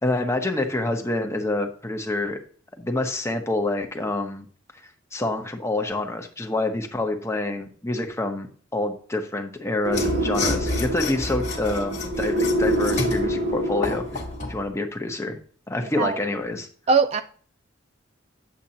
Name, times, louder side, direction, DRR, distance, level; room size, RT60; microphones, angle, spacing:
voice 1, 0.0-2.4 2.8-4.5 5.1-8.5 8.7-14.2 14.5-15.4 15.7-16.7, left 2 dB, 15° left, 1.0 m, -27 dB
sound 1, 9.8-14.5, right 1 dB, 90° right, 1.6 m, -26 dB
Mechanisms / Sawing, 9.9-14.6, left 3 dB, 35° left, 1.5 m, -30 dB
voice 2, 16.9-17.2, right 5 dB, 35° right, 0.3 m, -20 dB
8.8 x 7.5 x 2.9 m
head